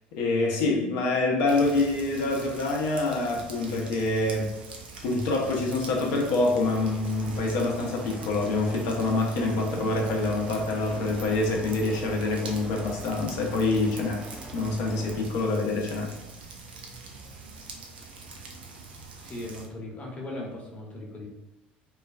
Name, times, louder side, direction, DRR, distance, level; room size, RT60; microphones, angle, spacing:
voice 1, 0.1-4.5 5.0-14.2 14.5-16.1, left 2 dB, 60° left, 0.6 m, -26 dB
sound 1, 1.5-19.7, right 3 dB, 80° right, 0.4 m, -45 dB
sound 2, 6.6-15.3, right 2 dB, 25° right, 0.6 m, -43 dB
voice 2, 19.2-21.3, left 1 dB, 25° left, 0.8 m, -38 dB
3.1 x 2.2 x 2.3 m
figure-of-eight pair, 65°, 5 cm